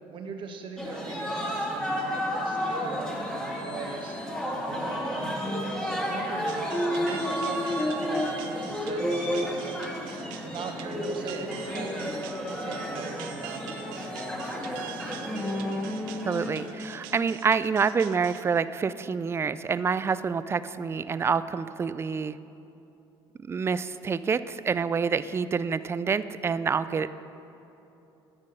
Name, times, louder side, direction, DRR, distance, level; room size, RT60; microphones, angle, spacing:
voice 1, 0.1-4.2 4.7-5.3 5.9-6.7 6.9-9.9 10.4-12.1 12.6-14.9, right 5 dB, 50° right, 4 dB, 1.2 m, -41 dB
sound 1, 0.8-17.1, equal, 10° left, 1.8 m, -31 dB
sound 2, 6.5-18.4, right 11 dB, 90° right, 0.5 m, -45 dB
voice 2, 16.3-22.4 23.4-27.1, right 5 dB, 25° right, 14 dB, 0.3 m, -27 dB
9.7 x 6.2 x 6.5 m, 2.9 s
supercardioid pair, 85°, 11 cm